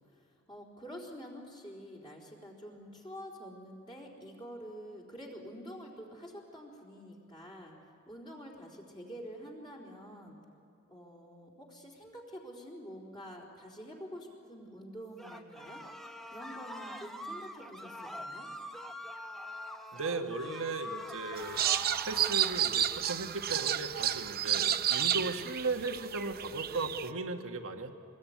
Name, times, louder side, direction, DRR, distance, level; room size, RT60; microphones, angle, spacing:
voice 1, 0.0-7.8 8.1-10.4 10.9-15.8 16.3-18.5, equal, 20° left, -2 dB, 4.0 m, -47 dB
sound 1, 15.2-22.6, left 1 dB, ahead, 1.2 m, -44 dB
voice 2, 19.9-21.6 22.0-27.9, right 3 dB, 65° right, 6 dB, 1.5 m, -36 dB
sound 2, 21.4-27.1, right 10 dB, 45° right, 0.7 m, -31 dB
24.0 x 20.5 x 9.4 m, 2.6 s
head